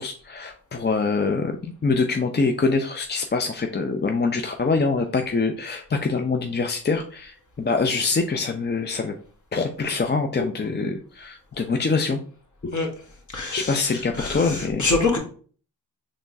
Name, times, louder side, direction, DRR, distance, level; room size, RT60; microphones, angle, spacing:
voice 1, 0.0-9.1 9.5-12.2 12.6-12.7 13.5-14.9, left 4 dB, 25° left, 4 dB, 0.5 m, -24 dB
voice 2, 13.3-15.2, left 3 dB, 45° left, 2 dB, 1.4 m, -25 dB
4.3 x 3.1 x 2.6 m, 0.43 s
cardioid pair, 45°, 42 cm